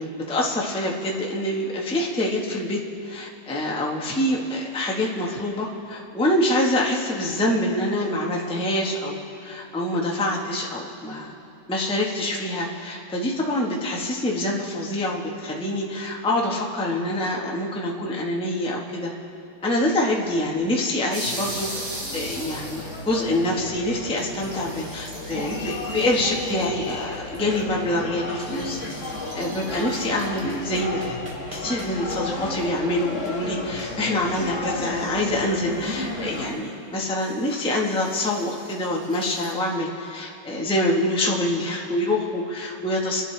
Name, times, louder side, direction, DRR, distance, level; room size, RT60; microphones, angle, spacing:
voice 1, 0.0-9.2 9.4-11.4 11.7-19.1 19.6-31.1 31.5-43.2, left 1 dB, 5° left, -2 dB, 0.9 m, -26 dB
sound 1, 21.1-23.6 23.9-24.0 24.2-27.0 27.3-27.6 28.2-32.2 35.1-35.3 35.9-36.0 36.3-36.4 37.2-39.5, right 1 dB, 50° right, 2.9 m, -39 dB
sound 2, 21.2-36.5, left 2 dB, 40° left, 1.5 m, -33 dB
26.5 x 11.0 x 3.4 m, 2.7 s
omnidirectional pair, 2.4 m